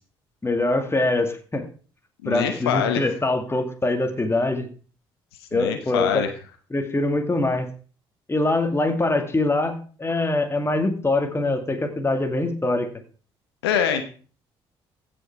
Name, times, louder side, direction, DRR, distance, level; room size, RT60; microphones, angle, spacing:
voice 1, 0.4-1.7 2.3-4.7 5.5-6.2 6.7-7.7 8.3-12.9, left 2 dB, 20° left, 6 dB, 2.2 m, -23 dB
voice 2, 2.2-3.0 5.5-6.3 13.6-14.0, left 8 dB, 85° left, 8 dB, 1.0 m, -24 dB
15.0 x 5.7 x 4.7 m, 0.39 s
hypercardioid pair, 50°, 13 cm